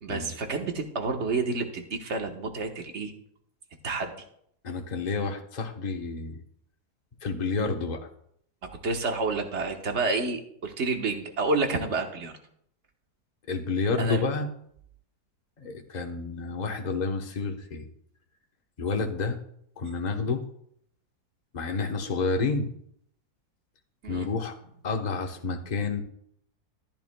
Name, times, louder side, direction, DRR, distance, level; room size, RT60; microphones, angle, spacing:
voice 1, 0.0-3.1 3.8-4.1 8.8-12.3 14.0-14.2 24.0-24.3, right 3 dB, 45° right, 4 dB, 1.4 m, -29 dB
voice 2, 4.6-6.4 7.2-8.0 13.5-14.5 15.6-17.9 18.8-19.4 19.8-20.5 21.5-22.7 24.1-24.5 24.8-26.0, left 4 dB, 30° left, 3 dB, 1.0 m, -29 dB
14.0 x 10.5 x 2.2 m, 0.70 s
omnidirectional pair, 1.7 m